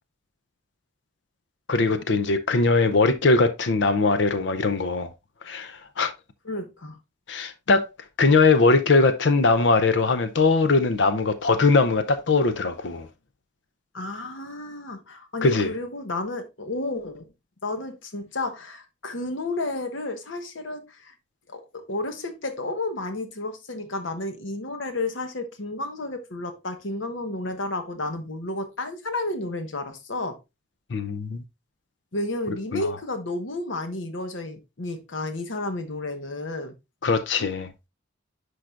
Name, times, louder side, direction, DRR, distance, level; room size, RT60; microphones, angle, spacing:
voice 1, 1.7-5.1 5.4-6.1 7.3-7.9 8.2-13.1 15.4-15.7 30.9-31.4 32.7-32.9 37.0-37.7, left 3 dB, 70° left, 0.6 m, -21 dB
voice 2, 6.4-7.0 13.9-17.3 17.6-21.1 21.5-30.4 32.1-36.7, left 2 dB, 90° left, 1.3 m, -32 dB
10.5 x 4.9 x 2.4 m
head